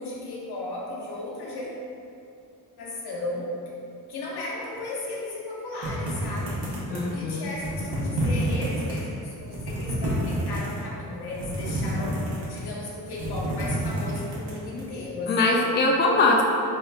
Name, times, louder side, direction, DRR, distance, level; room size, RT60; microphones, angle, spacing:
voice 1, 0.0-1.7 2.8-3.5 4.1-15.6, left 2 dB, 70° left, -4 dB, 0.8 m, -35 dB
sound 1, 5.8-7.2 7.5-9.0 9.4-10.8 11.3-12.7 13.0-14.8, right 1 dB, 75° right, 1.1 m, -29 dB
voice 2, 6.9-7.5 15.3-16.4, left 2 dB, 30° left, 0 dB, 0.3 m, -22 dB
4.4 x 2.4 x 2.4 m, 2.6 s
cardioid pair, 70°, 40 cm